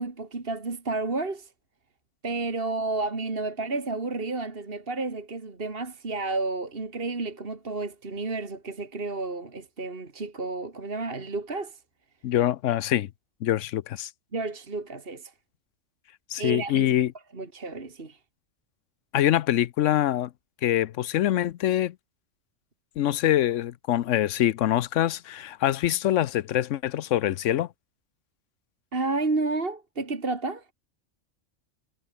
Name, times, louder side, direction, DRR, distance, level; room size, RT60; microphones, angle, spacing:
voice 1, 0.0-1.5 2.2-11.8 14.3-15.3 16.4-16.9 17.3-18.2 28.9-30.7, right 3 dB, 50° right, 2.6 m, -31 dB
voice 2, 12.2-13.1 13.4-14.1 16.3-17.1 19.1-20.3 20.6-21.9 23.0-27.7, left 12 dB, 85° left, 1.0 m, -24 dB
omnidirectional pair, 1.3 m